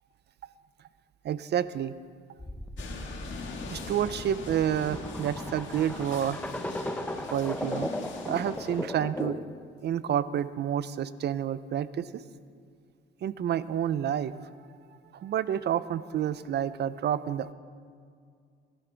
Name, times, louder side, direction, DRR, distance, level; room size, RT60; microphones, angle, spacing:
voice 1, 1.2-1.9 3.7-6.4 7.3-7.9 8.3-9.4 9.8-12.2 13.2-14.3 15.1-17.5, right 10 dB, 60° right, 15 dB, 0.6 m, -29 dB
sound 1, 2.4-9.6, left 1 dB, 5° left, 0.8 m, -37 dB
sound 2, 2.8-8.8, left 4 dB, 70° left, 1.8 m, -42 dB
19.5 x 12.0 x 3.5 m, 2.2 s
cardioid pair, 90°, 20 cm